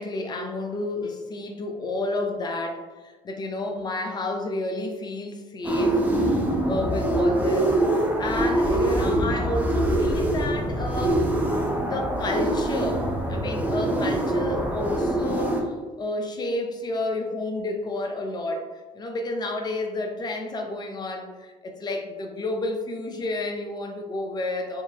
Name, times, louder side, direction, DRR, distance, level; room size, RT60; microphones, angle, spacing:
voice 1, 0.0-6.1 6.6-11.2 11.5-13.0 13.3-24.8, left 2 dB, 30° left, 3 dB, 0.6 m, -30 dB
sound 1, 5.6-15.6, right 1 dB, 10° right, 0.8 m, -24 dB
3.5 x 2.8 x 2.7 m, 1.3 s
supercardioid pair, 70°, 14 cm